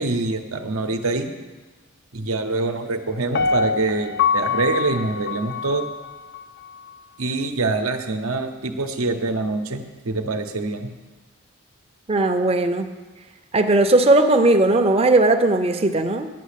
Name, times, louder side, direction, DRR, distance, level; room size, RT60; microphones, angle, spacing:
voice 1, 0.0-1.3 2.1-5.8 7.2-10.9, right 3 dB, 80° right, 6 dB, 0.8 m, -25 dB
Piano, 3.3-6.4 6.9-7.0, left 5 dB, 50° left, 0.4 m, -24 dB
voice 2, 12.1-12.9 13.5-16.3, right 2 dB, 30° right, 6 dB, 0.5 m, -17 dB
9.3 x 5.8 x 8.2 m, 1.3 s
head